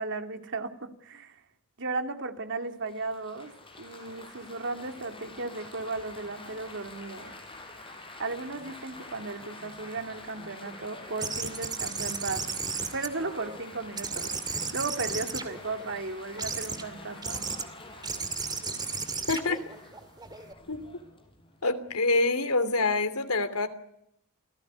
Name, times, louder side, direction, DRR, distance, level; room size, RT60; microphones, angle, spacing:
voice 1, 0.0-1.4 1.8-3.5 3.8-7.3 8.2-12.5 12.9-17.5, right 3 dB, 55° right, 6 dB, 2.7 m, -35 dB
Laughter / Applause / Chatter, 2.9-22.0, left 2 dB, 25° left, 6.6 m, -47 dB
sound 1, 11.2-13.6 14.0-15.9 16.4-16.8 17.2-17.6 18.0-20.5, right 4 dB, 20° right, 2.5 m, -34 dB
voice 2, 19.3-19.6 20.7-20.8 21.6-23.7, left 3 dB, 75° left, 11 dB, 2.9 m, -26 dB
29.0 x 17.5 x 9.6 m, 0.77 s
head